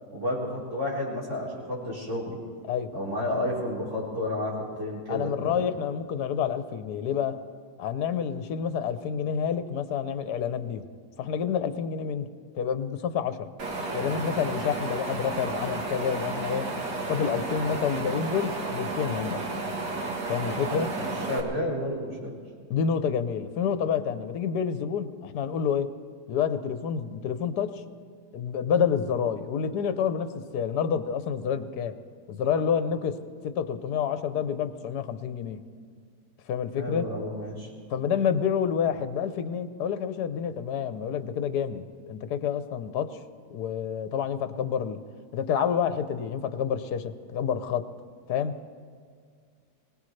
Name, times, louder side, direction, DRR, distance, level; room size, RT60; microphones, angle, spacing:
voice 1, 0.1-2.4 2.9-5.6 20.4-22.3 36.8-37.7, left 1 dB, 45° right, -5 dB, 4.5 m, -31 dB
voice 2, 5.1-7.4 7.8-10.8 11.2-12.3 12.5-13.5 13.9-16.7 17.1-19.4 20.3-20.9 22.7-25.9 26.3-27.8 28.3-31.9 32.3-33.2 33.4-35.6 36.5-37.1 37.9-43.2 43.5-45.0 45.3-47.8 48.3-48.5, left 7 dB, 70° left, 10 dB, 1.3 m, -28 dB
Wind, 13.6-21.4, right 3 dB, 80° right, 2.2 m, -32 dB
24.0 x 18.0 x 3.3 m, 2.1 s
omnidirectional pair, 1.8 m